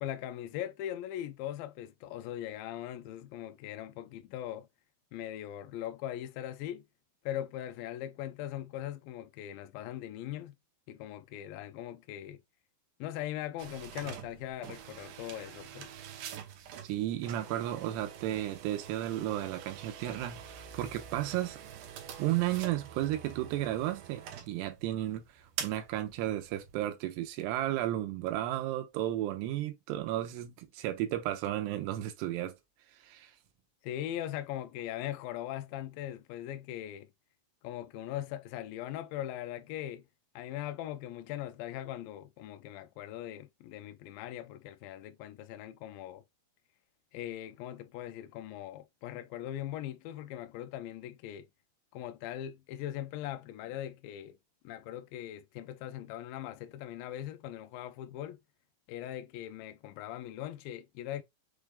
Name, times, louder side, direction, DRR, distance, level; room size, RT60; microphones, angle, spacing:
voice 1, 0.0-4.7 5.1-6.9 7.3-10.6 10.9-12.4 13.0-15.9 33.8-37.1 37.6-40.1 40.4-46.2 47.1-51.5 51.9-54.4 54.6-58.4 58.9-61.2, left 12 dB, 85° left, 2.1 m, -40 dB
sound 1, 13.6-26.8, right 9 dB, 70° right, 2.2 m, -46 dB
voice 2, 16.8-21.6 22.2-25.2 25.6-32.5 33.0-33.3, right 13 dB, 85° right, 2.9 m, -33 dB
6.5 x 3.4 x 2.3 m
omnidirectional pair, 4.7 m